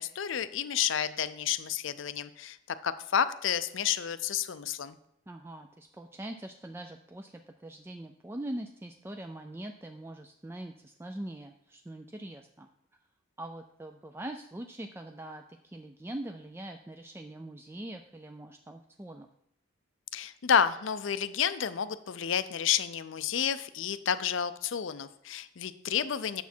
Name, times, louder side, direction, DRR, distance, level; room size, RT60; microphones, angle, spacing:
voice 1, 0.0-2.6 2.8-5.0 20.1-26.4, left 8 dB, 75° left, 13 dB, 0.5 m, -30 dB
voice 2, 5.3-12.7 13.4-19.3, right 1 dB, 10° right, 5 dB, 0.3 m, -42 dB
9.4 x 6.9 x 4.4 m, 0.77 s
head